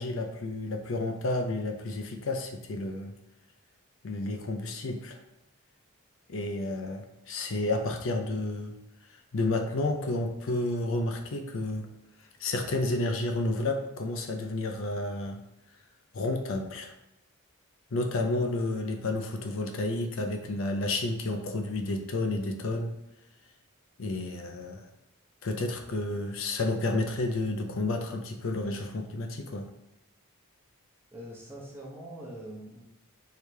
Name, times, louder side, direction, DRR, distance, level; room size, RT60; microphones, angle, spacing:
voice 1, 0.0-3.1 4.0-5.2 6.3-8.7 9.3-11.9 12.4-15.4 16.1-16.9 17.9-22.9 24.0-24.9 25.4-29.6, left 2 dB, 60° left, 4 dB, 0.5 m, -31 dB
voice 2, 31.1-32.8, right 1 dB, 10° right, -4 dB, 0.9 m, -43 dB
4.7 x 3.3 x 3.3 m, 0.89 s
head